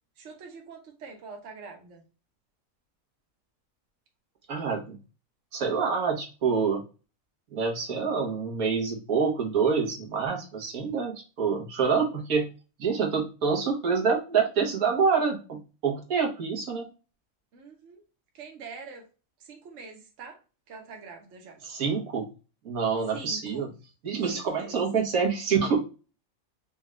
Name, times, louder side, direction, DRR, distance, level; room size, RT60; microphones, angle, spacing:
voice 1, 0.2-2.0 17.5-18.0 18.3-19.1 19.4-20.4 20.7-21.6 23.1-23.7 24.2-24.8, right 4 dB, 60° right, 2 dB, 1.3 m, -44 dB
voice 2, 4.5-5.0 5.5-6.8 7.5-12.5 12.8-16.9 21.6-22.3 22.6-23.7 24.0-25.8, right 5 dB, 90° right, 1 dB, 1.6 m, -26 dB
5.2 x 2.4 x 3.1 m, 0.33 s
omnidirectional pair, 1.5 m